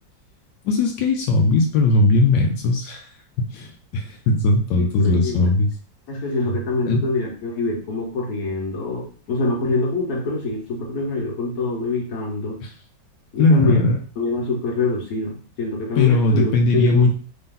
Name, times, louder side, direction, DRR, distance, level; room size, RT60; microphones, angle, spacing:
voice 1, 0.6-3.1 3.4-5.7 6.9-7.1 12.6-12.7 13.4-14.0 16.0-17.1, left 2 dB, 80° left, 3 dB, 1.3 m, -18 dB
voice 2, 4.7-5.5 6.1-12.6 13.3-13.8 14.2-17.1, left 3 dB, 55° left, -2 dB, 1.5 m, -25 dB
3.4 x 2.7 x 3.7 m, 0.40 s
omnidirectional pair, 2.0 m